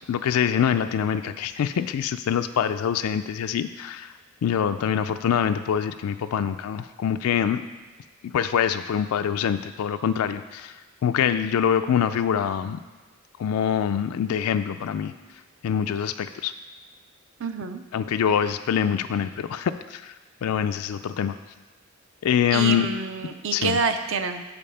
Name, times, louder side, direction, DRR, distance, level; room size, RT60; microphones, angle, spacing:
voice 1, 0.1-4.1 4.4-7.6 8.3-10.7 11.0-12.8 13.4-15.1 15.6-16.5 17.9-20.1 20.4-21.4 22.2-22.9 23.5-23.8, left 8 dB, 80° left, 9 dB, 0.3 m, -24 dB
voice 2, 17.4-17.8 22.5-24.4, right 4 dB, 60° right, 8 dB, 0.5 m, -27 dB
7.0 x 5.2 x 5.5 m, 1.3 s
head